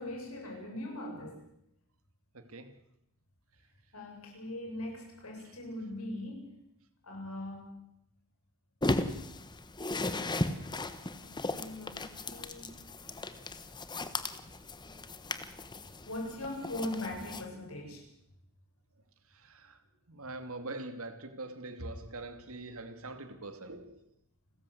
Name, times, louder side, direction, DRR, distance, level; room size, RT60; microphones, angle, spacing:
voice 1, 0.0-1.5 3.9-6.6 7.0-7.8 11.2-12.8 16.1-18.1, left 1 dB, 75° left, 2 dB, 7.6 m, -40 dB
voice 2, 2.3-2.7 19.4-19.8 20.1-24.0, right 2 dB, 70° right, 8 dB, 2.6 m, -43 dB
sound 1, 8.8-17.5, left 2 dB, 20° left, 1.3 m, -36 dB
29.5 x 14.0 x 8.0 m, 0.80 s
head